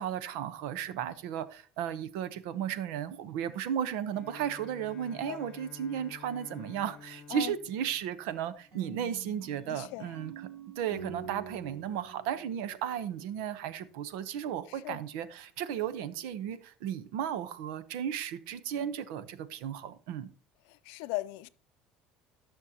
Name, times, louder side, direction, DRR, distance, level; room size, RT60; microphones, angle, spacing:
voice 1, 0.0-10.5 10.8-20.3, right 9 dB, 85° right, 0.9 m, -35 dB
Bowed string instrument, 4.1-8.9, left 6 dB, 30° left, 0.9 m, -51 dB
sound 1, 8.7-13.6, right 5 dB, 50° right, 3.6 m, -47 dB
voice 2, 9.7-10.1 14.7-15.0 20.7-21.5, left 18 dB, 80° left, 0.5 m, -38 dB
17.5 x 6.4 x 2.9 m
cardioid pair, 160°, 3 cm